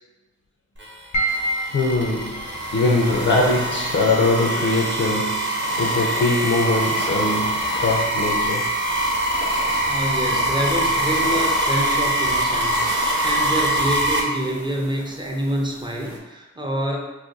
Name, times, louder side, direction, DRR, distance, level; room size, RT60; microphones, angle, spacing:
sound 1, 0.8-14.2, right 1 dB, 40° right, 0.9 m, -24 dB
sound 2, 1.1-15.6, right 1 dB, 85° left, 0.9 m, -36 dB
sound 3, 1.3-16.2, right 3 dB, 75° right, 0.5 m, -37 dB
voice 1, 1.7-8.7, left 2 dB, 50° left, -2 dB, 0.5 m, -22 dB
voice 2, 9.8-17.1, equal, 15° right, -1 dB, 0.6 m, -27 dB
2.4 x 2.2 x 3.9 m, 1.1 s
cardioid pair, 45°, 29 cm